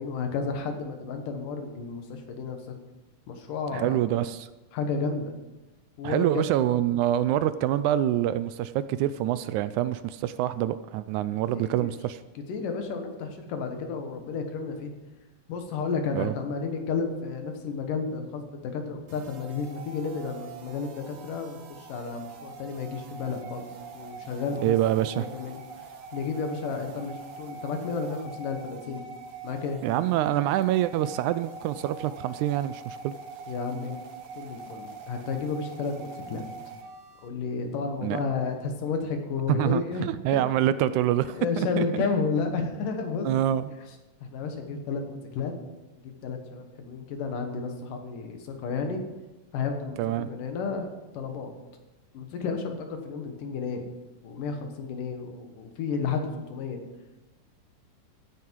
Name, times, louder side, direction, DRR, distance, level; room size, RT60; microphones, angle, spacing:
voice 1, 0.0-2.8 3.3-4.0 4.7-5.3 6.0-6.4 11.5-11.9 12.5-14.9 15.5-23.7 23.9-24.8 25.1-25.6 26.1-29.0 29.4-29.8 33.5-34.0 34.4-36.5 37.2-40.1 40.3-40.4 41.3-43.3 44.2-45.5 46.0-49.0 49.5-50.9 51.1-51.5 52.1-53.9 54.2-56.8, left 5 dB, 85° left, 5 dB, 3.1 m, -32 dB
voice 2, 3.7-4.5 6.0-12.2 16.1-16.4 24.6-25.3 29.8-33.1 38.0-38.2 39.5-41.9 43.2-43.7 50.0-50.3, right 12 dB, 80° right, 14 dB, 1.9 m, -26 dB
sound 1, 19.1-37.3, right 4 dB, 55° right, 1.7 m, -43 dB
15.5 x 9.5 x 4.7 m, 1.1 s
omnidirectional pair, 3.7 m